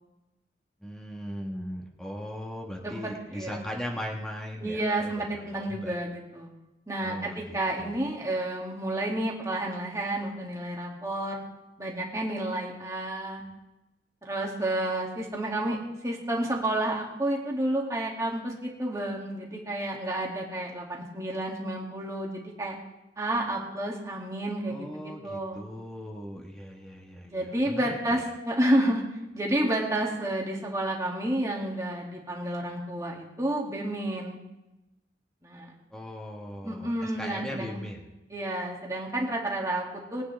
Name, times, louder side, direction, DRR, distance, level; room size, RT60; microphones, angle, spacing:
voice 1, 0.8-6.0 7.0-8.0 24.7-28.3 35.9-38.0, equal, 5° left, -2 dB, 1.5 m, -39 dB
voice 2, 2.8-3.6 4.6-6.5 6.9-11.4 11.8-13.4 14.2-15.8 16.0-22.7 23.2-25.7 27.2-29.0 29.3-34.4 35.4-35.7 36.6-37.8 38.3-40.2, right 1 dB, 20° right, -2 dB, 2.4 m, -30 dB
22.5 x 9.3 x 3.5 m, 0.99 s
head